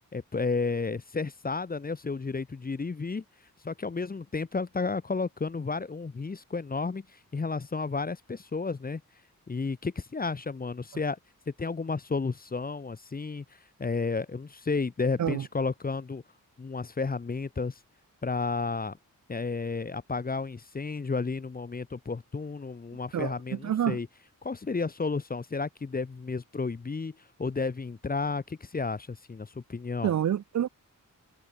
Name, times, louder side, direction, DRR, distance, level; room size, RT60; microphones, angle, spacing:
voice 1, 0.1-3.2 3.6-7.0 7.3-9.0 9.5-11.2 11.5-13.4 13.8-16.2 16.6-17.7 18.2-19.0 19.3-24.1 24.4-30.1, left 4 dB, 25° left, 0.7 m, -32 dB
voice 2, 23.1-24.0 30.0-30.7, right 10 dB, 55° right, 0.5 m, -28 dB
wide cardioid pair, 105°, 34 cm